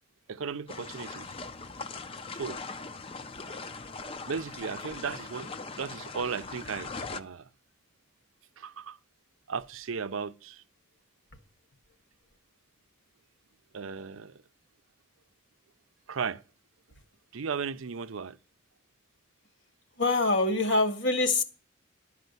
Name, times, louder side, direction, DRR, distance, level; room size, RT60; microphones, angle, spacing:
voice 1, 0.3-1.3 2.3-2.6 4.2-7.5 8.6-9.0 9.5-10.6 13.7-14.4 16.1-16.4 17.3-18.4, right 6 dB, 85° right, 0.6 m, -36 dB
sound 1, 0.7-7.2, left 4 dB, 30° left, 0.5 m, -40 dB
voice 2, 20.0-21.4, left 2 dB, 65° left, 1.7 m, -24 dB
12.0 x 5.0 x 8.1 m
head